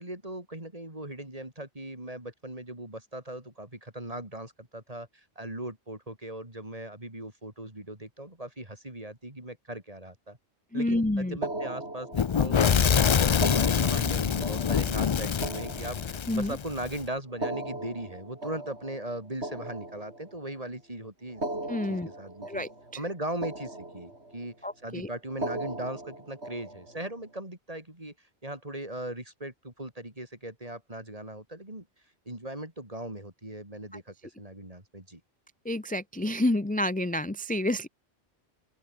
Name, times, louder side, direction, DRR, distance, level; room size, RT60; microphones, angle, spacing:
voice 1, 0.0-10.4 10.7-21.4 21.9-22.7 23.0-24.6 24.8-28.1 28.4-31.9 32.3-35.2, right 1 dB, 35° right, 4.7 m, -39 dB
voice 2, 10.7-11.4 16.3-16.6 21.7-22.1 22.5-23.0 24.6-25.1 35.6-37.9, left 1 dB, 10° left, 0.7 m, -29 dB
sound 1, 11.4-12.7 13.3-16.6 17.3-20.6 21.3-23.1 23.4-24.5 25.3-27.1, right 1 dB, 85° right, 6.4 m, -38 dB
Fire / Explosion, 12.1-17.0, left 7 dB, 55° left, 0.3 m, -25 dB
open air
omnidirectional pair, 1.1 m